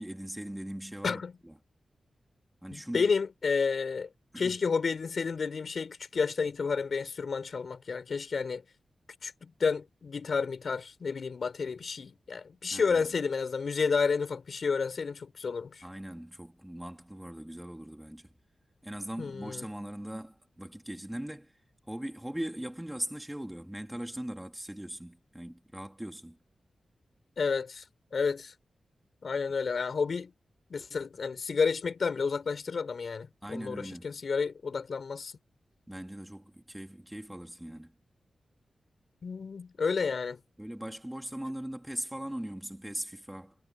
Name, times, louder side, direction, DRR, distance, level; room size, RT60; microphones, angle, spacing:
voice 1, 0.0-1.6 2.6-3.1 4.3-4.5 12.7-13.1 15.8-18.3 18.8-21.5 21.9-26.4 33.4-34.2 35.9-37.9 40.6-43.5, right 1 dB, 5° right, 3.1 m, -40 dB
voice 2, 2.7-4.1 4.4-8.6 9.2-15.8 19.2-19.6 27.4-27.8 28.1-28.5 29.2-30.3 30.7-35.3 39.2-40.4, left 5 dB, 60° left, 4.7 m, -31 dB
wide cardioid pair, 105°, 0 cm